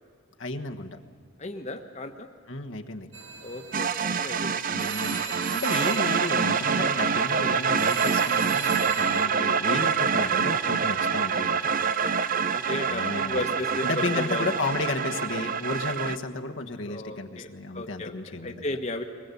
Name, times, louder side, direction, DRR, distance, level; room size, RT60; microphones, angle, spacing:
voice 1, 0.4-1.0 2.5-3.1 4.7-11.7 12.8-13.5 13.8-18.6, left 2 dB, 70° left, 3 dB, 1.4 m, -33 dB
voice 2, 1.4-2.3 3.4-4.9 5.3-5.4 6.7-6.9 9.2-9.6 11.8-12.3 12.5-14.5 16.9-17.5 17.7-19.0, left 2 dB, 35° left, 5 dB, 1.2 m, -35 dB
sound 1, 3.1-9.3, right 5 dB, 70° right, 1.1 m, -39 dB
sound 2, 3.7-16.2, right 6 dB, 45° right, 0.6 m, -26 dB
22.5 x 20.0 x 8.4 m, 2.1 s
head